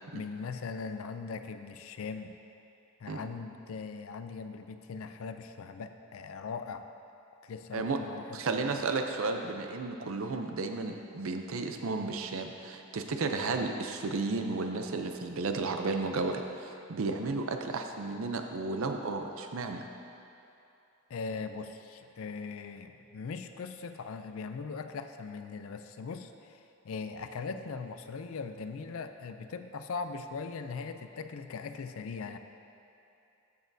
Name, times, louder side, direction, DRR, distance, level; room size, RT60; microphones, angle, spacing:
voice 1, 0.1-2.4 3.0-6.9 7.4-8.7 21.1-32.4, left 5 dB, 65° left, 8 dB, 0.4 m, -40 dB
voice 2, 8.3-19.9, right 3 dB, 65° right, 5 dB, 0.5 m, -33 dB
13.0 x 6.2 x 2.7 m, 2.8 s
head